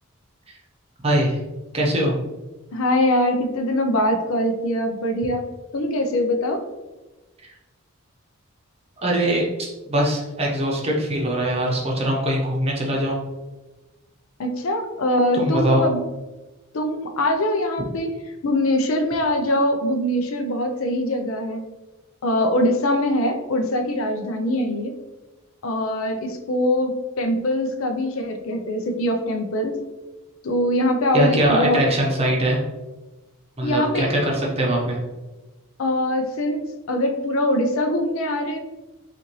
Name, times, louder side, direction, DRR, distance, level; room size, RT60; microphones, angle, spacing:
voice 1, 1.0-1.4 1.7-2.1 9.0-13.2 15.3-15.9 31.1-32.6 33.6-35.0, right 1 dB, 30° right, -2 dB, 0.8 m, -22 dB
voice 2, 2.7-5.4 5.7-6.6 14.4-16.0 16.7-18.1 18.4-21.6 22.2-25.0 25.6-29.8 30.4-31.8 33.6-34.1 35.8-38.6, left 1 dB, 75° left, 6 dB, 0.5 m, -22 dB
5.5 x 2.5 x 3.0 m, 1.1 s
head